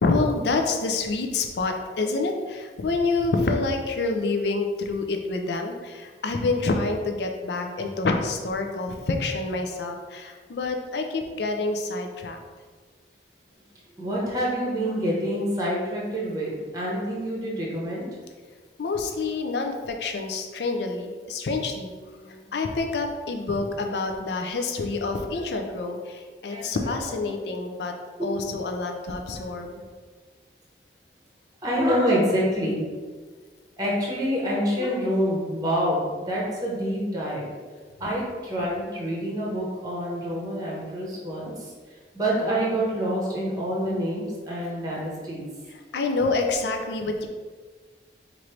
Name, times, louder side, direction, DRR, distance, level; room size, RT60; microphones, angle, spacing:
voice 1, 0.0-12.4 18.8-21.9 22.5-27.9 28.2-29.8 45.9-47.3, left 3 dB, 65° left, 4 dB, 0.4 m, -27 dB
voice 2, 14.0-18.1 22.2-22.5 25.3-25.5 26.4-26.7 27.3-27.5 28.2-28.3 29.5-29.6 31.6-32.9 33.8-37.5 38.0-41.7 42.1-45.5, equal, 20° right, -4 dB, 0.8 m, -27 dB
4.5 x 2.6 x 3.1 m, 1.5 s
head